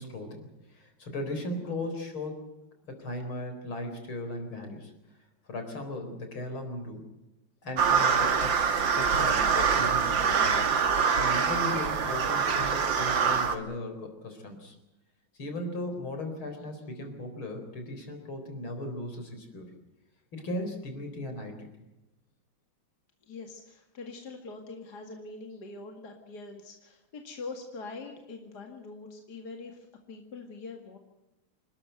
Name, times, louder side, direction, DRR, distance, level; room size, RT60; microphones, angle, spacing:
voice 1, 0.0-2.4 2.9-5.0 5.5-7.1 7.6-14.8 15.4-19.7 20.3-21.7, left 1 dB, 70° left, 6 dB, 5.0 m, -37 dB
sound 1, 7.8-13.6, right 6 dB, 60° right, 2.4 m, -25 dB
voice 2, 23.3-31.0, left 3 dB, 50° left, 3 dB, 2.6 m, -43 dB
28.0 x 13.0 x 9.2 m, 0.96 s
omnidirectional pair, 2.3 m